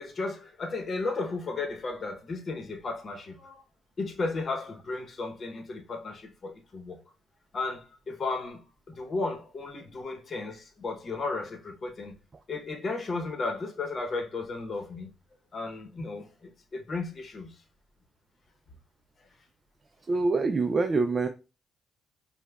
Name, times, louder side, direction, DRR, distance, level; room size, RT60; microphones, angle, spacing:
voice 1, 0.0-3.6 4.0-7.0 7.5-8.6 8.9-12.2 12.5-15.1 15.5-17.5, left 3 dB, 45° left, 0.9 m, -34 dB
voice 2, 20.1-21.3, right 3 dB, 35° right, 0.3 m, -25 dB
5.1 x 2.2 x 2.3 m
cardioid pair, 90°, 0 cm